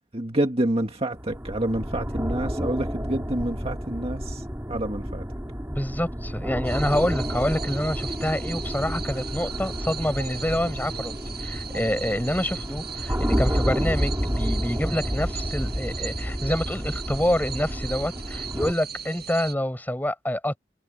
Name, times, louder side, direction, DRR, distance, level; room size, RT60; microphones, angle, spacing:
voice 1, 0.1-4.4 4.7-5.2, right 1 dB, 30° right, 2.0 m, -28 dB
sound 1, 1.1-18.7, equal, 15° right, 5.0 m, -30 dB
voice 2, 5.7-11.1 11.4-20.6, left 1 dB, 10° left, 8.0 m, -27 dB
sound 2, 6.7-19.5, right 7 dB, 60° right, 6.2 m, -38 dB
head